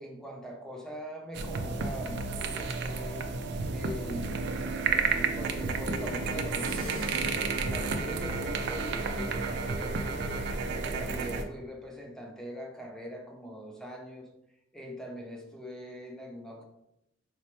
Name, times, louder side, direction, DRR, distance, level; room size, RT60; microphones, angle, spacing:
voice 1, 0.0-3.2 3.7-4.4 4.9-10.5 10.9-14.3 14.7-16.6, equal, 5° left, 1 dB, 0.4 m, -42 dB
sound 1, 1.3-11.4, right 4 dB, 60° right, 0.3 m, -31 dB
sound 2, 6.5-8.1, right 1 dB, 80° right, 0.9 m, -42 dB
4.0 x 2.1 x 2.9 m, 0.86 s
head